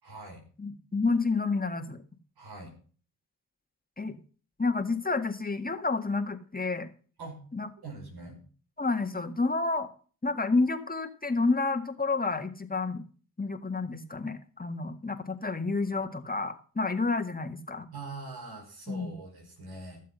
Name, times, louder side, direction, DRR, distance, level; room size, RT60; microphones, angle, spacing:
voice 1, 0.0-0.4 2.4-2.7 7.2-7.4 7.8-8.4 17.9-20.0, right 3 dB, 75° right, 2 dB, 5.2 m, -43 dB
voice 2, 0.6-2.0 4.0-4.2 4.6-6.9 7.5-7.7 8.8-9.9 10.2-13.0 13.4-17.9 18.9-19.1, left 3 dB, 20° left, 7 dB, 1.9 m, -29 dB
14.5 x 7.5 x 5.5 m, 0.41 s
supercardioid pair, 40°, 39 cm